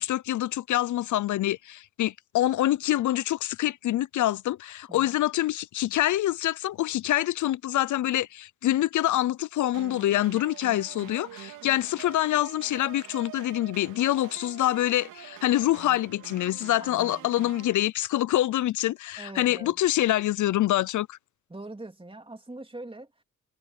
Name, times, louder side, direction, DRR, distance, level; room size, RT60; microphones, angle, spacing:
voice 1, 0.0-21.2, left 14 dB, 75° left, 0.6 m, -26 dB
sound 1, 9.7-17.7, right 13 dB, 90° right, 3.7 m, -46 dB
voice 2, 16.8-17.3 19.2-19.8 21.5-23.2, right 2 dB, 20° right, 3.4 m, -43 dB
supercardioid pair, 50°, 30 cm